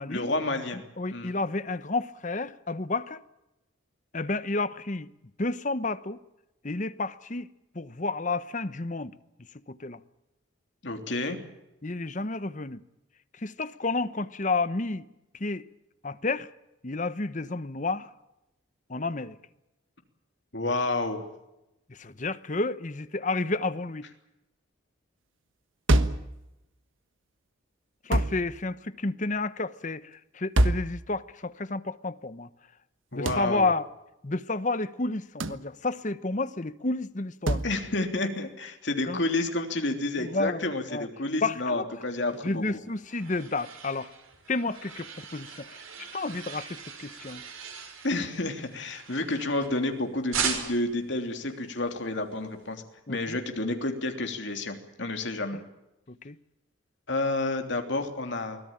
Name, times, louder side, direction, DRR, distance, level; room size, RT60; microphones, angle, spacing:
voice 1, 0.1-0.8 1.1-1.3 10.8-11.4 20.5-21.2 33.1-33.7 37.6-42.6 48.0-52.8 53.1-55.6 57.1-58.6, left 2 dB, 60° left, 3.2 m, -30 dB
voice 2, 0.7-3.2 4.1-5.1 5.4-6.2 6.6-7.5 7.7-9.1 9.4-10.0 11.8-12.8 13.3-15.1 15.3-15.7 16.0-16.5 16.8-18.1 18.9-19.4 21.9-24.1 28.0-32.5 33.1-33.9 34.2-37.6 39.1-39.2 40.2-41.1 41.4-41.8 42.4-44.1 44.5-47.4 53.1-53.4 55.5-55.6 56.1-56.4, left 3 dB, 35° left, 0.9 m, -31 dB
sound 1, 25.9-26.3 28.1-28.4 30.6-30.9 33.3-33.5 35.4-35.6 37.5-37.7, right 1 dB, 70° right, 1.4 m, -24 dB
sound 2, 42.6-49.9 50.3-51.0, right 7 dB, 90° right, 5.6 m, -38 dB
24.0 x 17.5 x 8.8 m
head